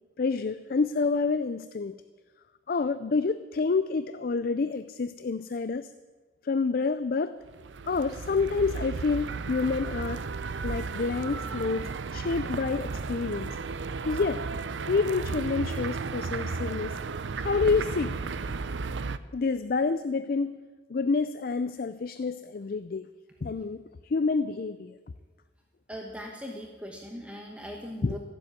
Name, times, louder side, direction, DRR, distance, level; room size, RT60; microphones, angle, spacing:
voice 1, 0.2-1.9 2.7-5.9 6.4-7.4 7.9-10.2 10.6-13.5 14.0-14.4 14.9-16.9 17.4-18.2 19.3-20.6 20.9-23.1 23.4-23.8 24.0-24.9 28.0-28.2, left 4 dB, 50° left, 13 dB, 0.4 m, -28 dB
sound 1, 7.5-19.2, right 4 dB, 80° right, 0.6 m, -34 dB
voice 2, 25.9-28.2, equal, 5° right, 0 dB, 1.2 m, -39 dB
15.0 x 7.7 x 9.5 m, 1.3 s
head